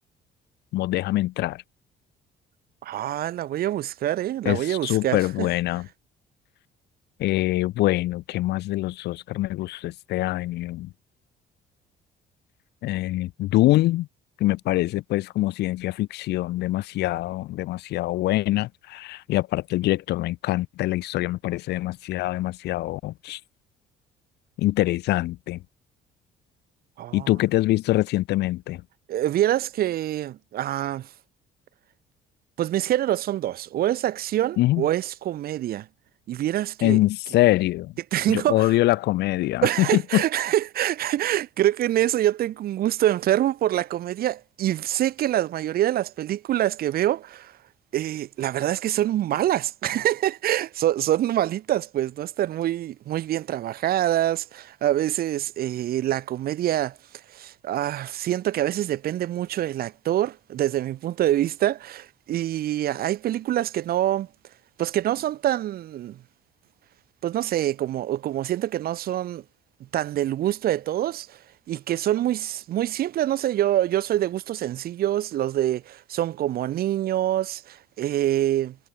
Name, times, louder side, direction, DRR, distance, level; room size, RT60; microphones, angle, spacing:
voice 1, 0.7-1.6 4.5-5.9 7.2-10.9 12.8-14.1 14.4-23.4 24.6-25.6 27.1-28.8 34.6-34.9 36.8-37.9 38.3-40.2, left 17 dB, 80° left, 3.6 m, -24 dB
voice 2, 2.8-5.5 27.0-27.3 29.1-31.1 32.6-35.9 36.3-37.0 38.1-38.7 39.6-47.5 47.9-57.0 57.3-64.3 64.8-66.2 67.2-69.4 69.9-71.4 71.7-78.8, right 13 dB, 65° right, 1.4 m, -25 dB
cardioid pair, 110°, 17 cm